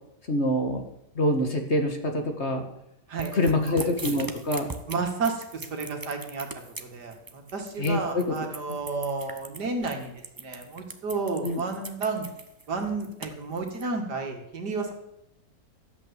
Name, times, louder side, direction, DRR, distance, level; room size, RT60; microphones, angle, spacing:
voice 1, 0.3-0.8 1.2-2.7 3.3-4.7 7.8-8.2 8.7-8.8 11.4-11.6, left 1 dB, 40° left, 5 dB, 1.9 m, -25 dB
voice 2, 3.1-3.9 4.9-6.5 6.8-10.1 10.4-12.3 12.7-14.9, right 4 dB, 75° right, 3 dB, 2.7 m, -31 dB
sound 1, 3.2-13.8, right 3 dB, 20° right, 0.6 m, -40 dB
13.0 x 8.3 x 8.0 m, 0.81 s
omnidirectional pair, 1.8 m